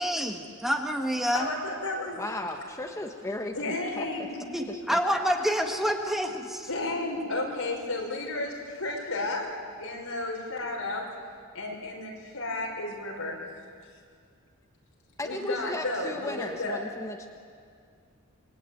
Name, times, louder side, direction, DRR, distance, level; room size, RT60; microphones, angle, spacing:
voice 1, 0.0-1.5 4.5-6.7, equal, ahead, 3 dB, 1.5 m, -28 dB
voice 2, 1.3-2.2 3.5-4.4 6.7-11.1 11.5-13.4 15.2-16.8, left 2 dB, 75° left, 0 dB, 5.8 m, -33 dB
voice 3, 2.2-4.1 4.3-5.0 15.2-17.3, left 2 dB, 15° left, 2 dB, 1.4 m, -36 dB
28.0 x 22.0 x 9.3 m, 2.2 s
head